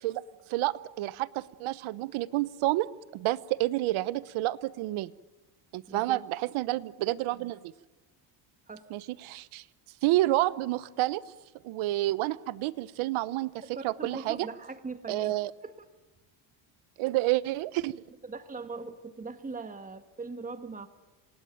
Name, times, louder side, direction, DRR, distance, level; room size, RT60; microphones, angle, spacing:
voice 1, 0.5-5.1 5.7-7.7 8.9-9.6 10.0-11.2 11.6-14.5 15.1-15.5 17.0-18.0, right 17 dB, 70° right, 17 dB, 1.0 m, -29 dB
voice 2, 5.9-6.2 8.7-8.9 13.6-15.3 15.6-15.7 18.2-20.9, right 4 dB, 15° right, 9 dB, 1.6 m, -40 dB
27.0 x 18.5 x 9.1 m, 1.2 s
cardioid pair, 105°, 50 cm